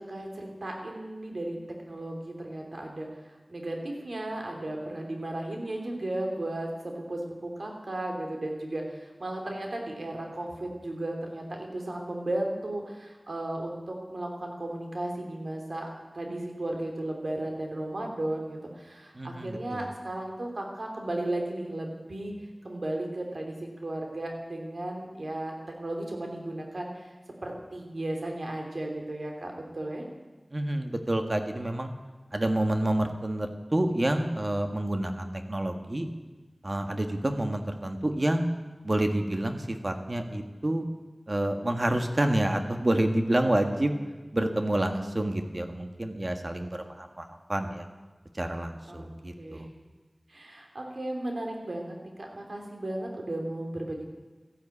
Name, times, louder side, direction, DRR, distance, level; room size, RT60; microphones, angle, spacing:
voice 1, 0.0-1.6 1.8-3.1 3.5-15.9 16.1-22.3 22.6-27.2 27.4-30.1 48.8-49.1 49.4-49.7 50.3-54.0, right 1 dB, 85° right, 1 dB, 3.1 m, -35 dB
voice 2, 19.1-19.9 30.5-31.9 32.3-36.1 36.6-38.5 38.8-40.8 41.3-43.9 44.3-47.8 48.3-49.7, right 1 dB, 45° right, 5 dB, 1.7 m, -28 dB
14.0 x 10.5 x 8.5 m, 1.2 s
wide cardioid pair, 50°, 0 cm